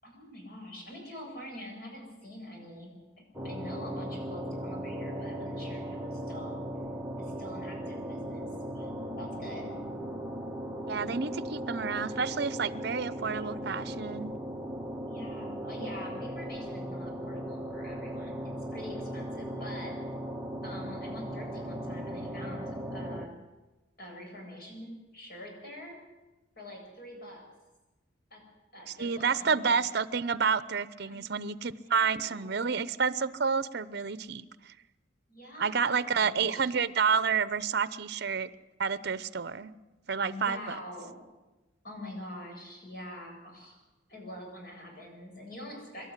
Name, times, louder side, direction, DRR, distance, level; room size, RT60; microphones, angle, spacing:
voice 1, 0.0-2.9 3.4-6.6 7.2-9.7 15.1-19.9 20.6-23.3 24.0-26.0 26.6-27.4 28.3-28.4 28.7-29.7 31.1-31.4 31.8-32.8 35.3-36.7 40.2-41.2 41.8-43.8 44.1-46.1, left 1 dB, 50° left, 0 dB, 7.8 m, -45 dB
sound 1, 3.3-23.3, equal, 5° right, 1.4 m, -38 dB
voice 2, 10.9-14.3 28.9-34.7 35.6-38.5 38.8-39.7 40.1-40.8, right 5 dB, 60° right, 16 dB, 0.8 m, -29 dB
25.0 x 12.5 x 9.8 m, 1.1 s
head